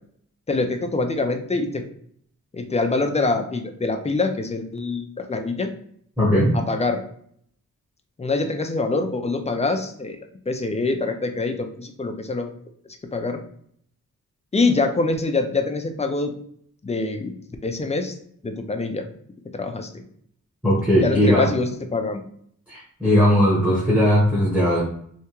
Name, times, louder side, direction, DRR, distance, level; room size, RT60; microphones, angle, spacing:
voice 1, 0.5-1.8 2.5-5.7 6.5-7.0 8.2-10.2 10.5-12.5 13.1-13.4 14.5-16.4 16.8-17.3 17.6-18.1 18.4-19.1 19.5-20.0 21.0-22.2, left 3 dB, 20° left, 6 dB, 0.3 m, -24 dB
voice 2, 6.2-6.5 20.6-21.5 22.7-24.8, equal, 5° right, -7 dB, 1.0 m, -18 dB
3.4 x 2.8 x 2.9 m, 0.65 s
wide cardioid pair, 175°, 32 cm